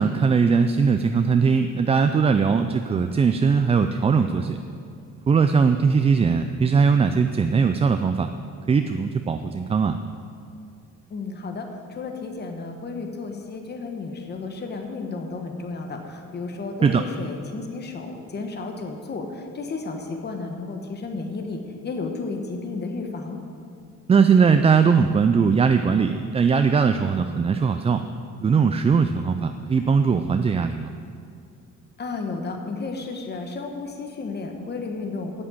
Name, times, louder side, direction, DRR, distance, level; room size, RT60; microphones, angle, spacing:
voice 1, 0.0-4.6 5.3-8.3 8.7-10.0 16.8-17.0 24.1-28.0 28.4-30.9, right 5 dB, 20° right, 8 dB, 0.3 m, -20 dB
voice 2, 11.1-23.4 32.0-35.4, left 3 dB, 35° left, 3 dB, 1.3 m, -33 dB
8.6 x 7.3 x 8.7 m, 2.4 s
cardioid pair, 115°, 31 cm